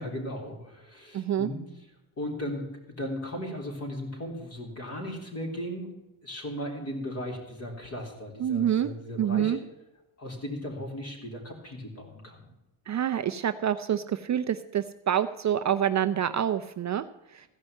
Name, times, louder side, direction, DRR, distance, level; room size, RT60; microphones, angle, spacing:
voice 1, 0.0-1.9 2.2-9.7 10.2-12.5, equal, 30° left, 0 dB, 3.6 m, -37 dB
voice 2, 1.1-1.5 8.4-8.9 9.2-9.6 12.9-17.0, right 10 dB, 40° right, 10 dB, 0.4 m, -27 dB
15.5 x 5.4 x 9.7 m, 0.94 s
cardioid pair, 160°, 49 cm